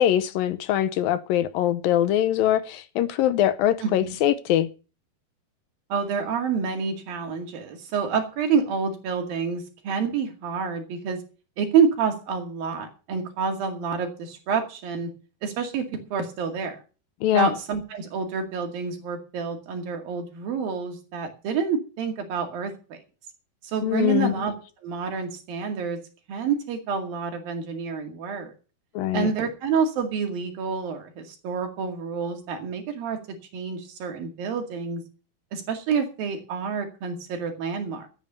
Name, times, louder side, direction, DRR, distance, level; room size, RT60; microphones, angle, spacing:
voice 1, 0.0-4.7 17.2-17.5 23.8-24.3 29.0-29.3, left 11 dB, 75° left, 2.5 m, -22 dB
voice 2, 3.8-4.1 5.9-11.2 11.6-15.1 15.4-16.8 17.3-23.0 23.6-24.5 24.8-26.0 26.3-28.5 29.1-35.0 35.5-38.1, right 5 dB, 70° right, 3.9 m, -28 dB
13.0 x 9.0 x 6.9 m
omnidirectional pair, 4.4 m